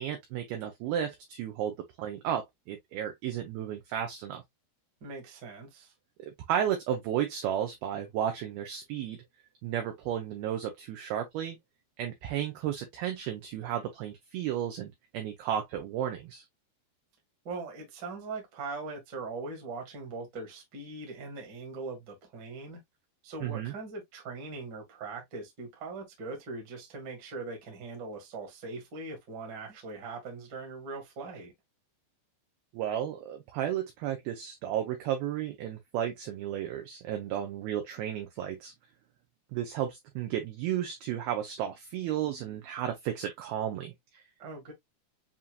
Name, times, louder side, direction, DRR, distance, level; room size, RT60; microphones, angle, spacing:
voice 1, 0.0-4.4 6.2-9.2 9.6-11.6 12.0-16.4 23.4-23.7 32.7-38.7 39.5-43.9, right 10 dB, 85° right, 2.2 m, -33 dB
voice 2, 5.0-5.9 17.4-22.8 23.2-31.5 44.4-44.7, right 3 dB, 50° right, 1.3 m, -41 dB
7.3 x 2.6 x 2.3 m
omnidirectional pair, 5.2 m